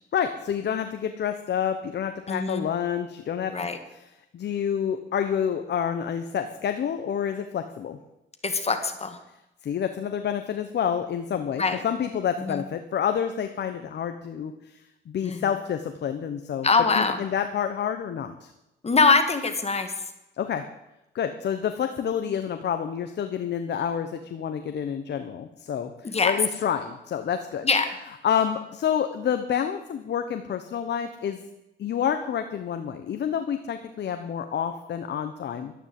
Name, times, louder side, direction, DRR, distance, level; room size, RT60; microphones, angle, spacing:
voice 1, 0.1-4.1 4.3-8.0 9.6-14.8 15.1-16.7 16.9-18.5 20.4-20.6 21.1-27.7 28.2-31.5 31.8-35.7, left 8 dB, 60° left, 7 dB, 1.3 m, -28 dB
voice 2, 2.3-2.6 3.5-3.8 8.4-9.2 11.6-11.8 12.4-12.6 15.2-15.4 16.6-17.2 18.8-19.9 26.1-26.4 27.6-28.0, left 4 dB, 30° left, 8 dB, 1.9 m, -23 dB
12.5 x 11.0 x 7.8 m, 0.91 s
cardioid pair, 90°, 20 cm